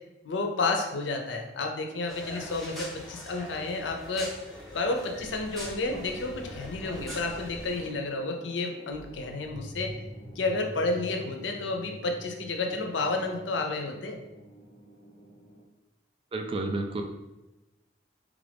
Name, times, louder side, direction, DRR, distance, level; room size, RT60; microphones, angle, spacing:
voice 1, 0.2-4.3 4.7-9.9 10.4-14.2, left 3 dB, 85° left, 3 dB, 0.5 m, -31 dB
sound 1, 2.1-7.9, equal, ahead, 0.7 m, -43 dB
sound 2, 5.2-15.6, equal, 65° left, 0.9 m, -46 dB
voice 2, 16.3-17.0, right 2 dB, 30° right, 4 dB, 0.3 m, -30 dB
3.4 x 2.5 x 3.4 m, 1.0 s
head